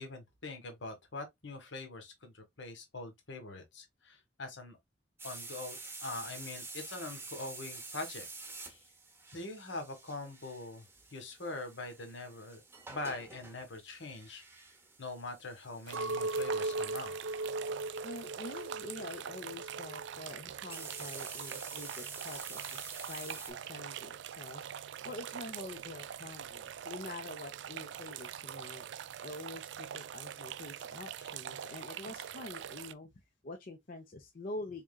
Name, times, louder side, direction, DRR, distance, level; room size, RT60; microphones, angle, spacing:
voice 1, 0.0-4.8 5.2-8.3 8.6-8.8 9.3-14.4 15.0-17.1, left 2 dB, 75° left, 1.4 m, -43 dB
sound 1, 5.2-18.8 20.7-23.5, right 3 dB, 10° right, 0.9 m, -49 dB
sound 2, 15.9-32.9, right 9 dB, 65° right, 0.3 m, -44 dB
Chink clink, 15.9-20.2 20.7-21.2, right 2 dB, 80° right, 0.8 m, -38 dB
voice 2, 18.0-24.7 25.0-28.9 29.2-34.8, left 2 dB, 50° left, 0.7 m, -46 dB
4.3 x 3.7 x 2.2 m
head